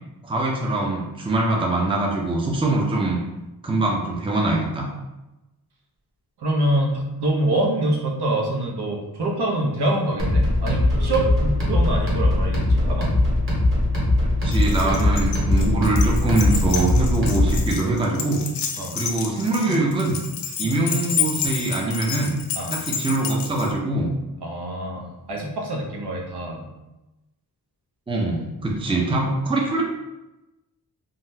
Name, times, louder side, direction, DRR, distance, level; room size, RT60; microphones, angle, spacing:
voice 1, 0.2-3.2 3.6-4.9 14.4-18.4 18.9-20.2 20.4-22.4 22.7-24.1 28.1-29.8, right 2 dB, 15° right, -1 dB, 0.5 m, -23 dB
voice 2, 6.4-13.1 18.8-19.0 19.7-19.8 20.6-20.7 22.6-22.8 24.4-26.7 28.9-29.0, right 1 dB, 70° right, -1 dB, 0.8 m, -25 dB
sound 1, 10.2-17.7, left 1 dB, 30° right, 1.0 m, -20 dB
Keys jangling, 14.5-23.7, left 7 dB, 85° left, 0.5 m, -30 dB
3.8 x 2.1 x 2.6 m, 0.99 s
wide cardioid pair, 105°, 40 cm